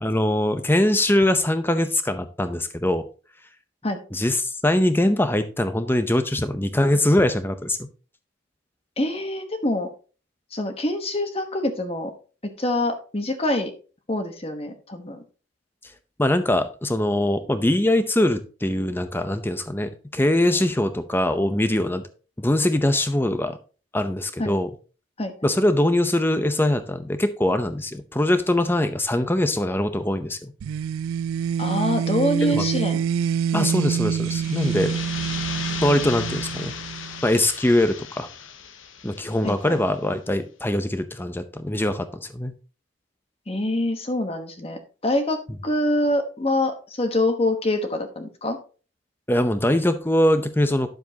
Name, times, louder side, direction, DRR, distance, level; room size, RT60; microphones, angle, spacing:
voice 1, 0.0-3.1 4.1-7.9 16.2-22.1 22.4-23.6 23.9-24.7 25.4-30.5 32.5-32.6 33.5-35.0 35.8-36.7 37.2-38.3 39.0-42.5 49.3-50.9, left 1 dB, 10° left, 10 dB, 0.6 m, -22 dB
voice 2, 9.0-9.9 10.5-12.1 12.4-13.7 14.1-15.2 24.4-24.6 25.2-25.3 31.6-33.0 33.5-33.9 39.4-39.8 43.5-48.6, left 1 dB, 30° left, 6 dB, 1.2 m, -25 dB
sound 1, 30.6-37.3, right 8 dB, 85° right, 0.3 m, -26 dB
sound 2, 34.1-39.8, left 7 dB, 70° left, 0.8 m, -36 dB
10.5 x 7.1 x 2.8 m, 0.36 s
head